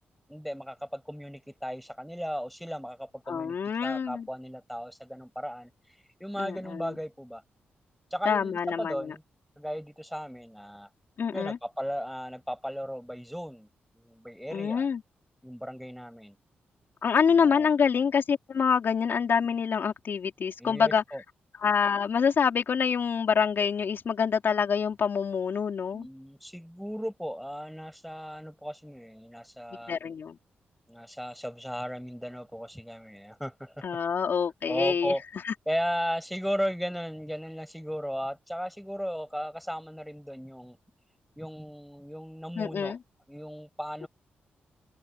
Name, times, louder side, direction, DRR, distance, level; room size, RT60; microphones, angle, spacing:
voice 1, 0.3-3.6 3.8-5.7 6.2-7.4 8.1-9.2 9.6-10.9 11.3-13.7 13.9-14.9 15.4-16.4 17.3-17.7 20.6-21.2 25.9-29.9 30.9-34.0 34.7-35.2 35.7-40.8 41.4-43.0 43.3-44.1, equal, ahead, 6.5 m, -36 dB
voice 2, 3.3-4.3 6.4-6.9 8.3-9.1 11.2-11.6 14.5-15.0 17.0-21.0 21.6-26.1 29.9-30.4 33.8-35.1 35.4-35.5 42.6-43.0, left 6 dB, 60° left, 3.7 m, -26 dB
cardioid pair, 70°, 4 cm